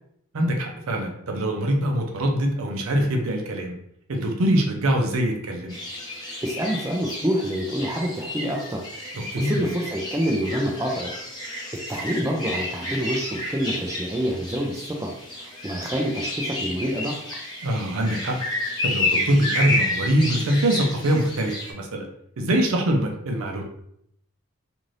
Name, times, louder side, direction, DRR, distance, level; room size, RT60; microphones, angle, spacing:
voice 1, 0.3-3.8 4.1-5.8 9.1-9.6 17.6-18.4 18.8-22.1 22.4-23.6, right 1 dB, 80° right, 2 dB, 0.6 m, -23 dB
sound 1, 5.7-21.7, left 1 dB, 20° left, 0.8 m, -31 dB
voice 2, 6.4-8.9 9.4-11.1 11.7-17.2, equal, 15° right, 0 dB, 0.3 m, -27 dB
2.6 x 2.5 x 3.2 m, 0.72 s
head